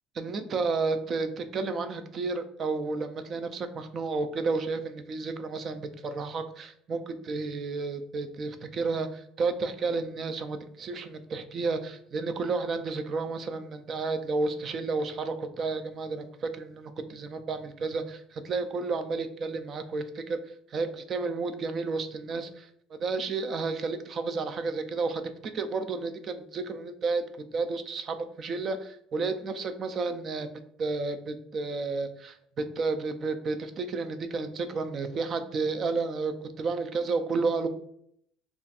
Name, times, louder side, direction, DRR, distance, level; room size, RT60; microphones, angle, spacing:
voice 1, 0.1-27.2 27.5-30.5 30.8-37.7, right 4 dB, 30° right, 8 dB, 0.4 m, -31 dB
3.3 x 2.4 x 4.0 m, 0.68 s
cardioid pair, 170°, 0 cm